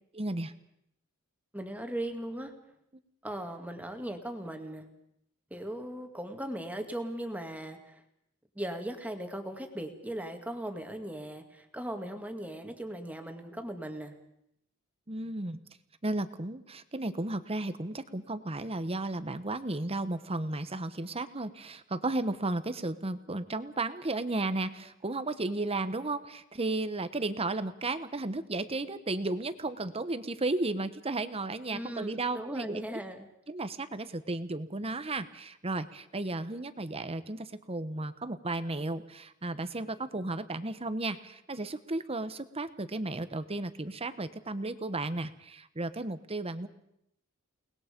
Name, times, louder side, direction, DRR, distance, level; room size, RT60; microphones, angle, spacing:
voice 1, 0.1-0.5 15.1-15.6 16.0-33.0 33.5-46.7, right 2 dB, 30° right, 12 dB, 1.1 m, -34 dB
voice 2, 1.5-2.5 3.2-4.9 5.5-8.0 8.6-14.1 31.7-33.3, right 1 dB, 5° right, 5 dB, 2.2 m, -38 dB
29.5 x 20.0 x 5.3 m, 0.76 s
head